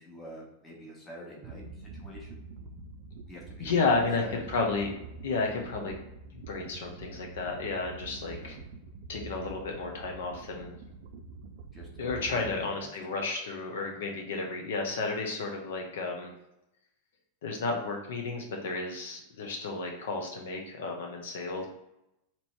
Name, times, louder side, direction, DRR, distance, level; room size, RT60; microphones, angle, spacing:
voice 1, 0.0-2.5 3.3-4.5 8.3-8.6 11.7-13.2, equal, 15° left, -2 dB, 1.1 m, -47 dB
sound 1, 1.4-12.7, right 3 dB, 60° right, 0.5 m, -46 dB
voice 2, 3.6-4.9 5.2-5.9 6.3-8.6 9.1-10.7 12.0-16.3 17.4-21.7, left 3 dB, 75° left, 2 dB, 0.7 m, -32 dB
3.0 x 2.7 x 4.4 m, 0.87 s
hypercardioid pair, 130°, 0 cm